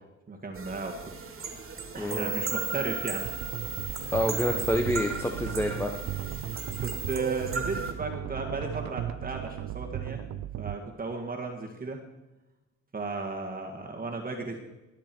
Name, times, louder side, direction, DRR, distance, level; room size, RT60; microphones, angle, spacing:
voice 1, 0.3-1.0 1.9-3.3 6.3-6.5 6.8-10.2 10.6-12.0 12.9-14.6, right 3 dB, 30° right, 1 dB, 2.0 m, -35 dB
sound 1, 0.5-7.9, right 4 dB, 45° right, 2.5 m, -38 dB
voice 2, 2.0-2.3 4.1-5.9, left 1 dB, 10° left, 2 dB, 1.2 m, -28 dB
sound 2, 2.1-7.2, right 4 dB, 35° left, 3.0 m, -36 dB
sound 3, 3.2-10.8, right 11 dB, 65° right, 0.7 m, -36 dB
21.0 x 7.5 x 4.6 m, 1.0 s
cardioid pair, 90°, 30 cm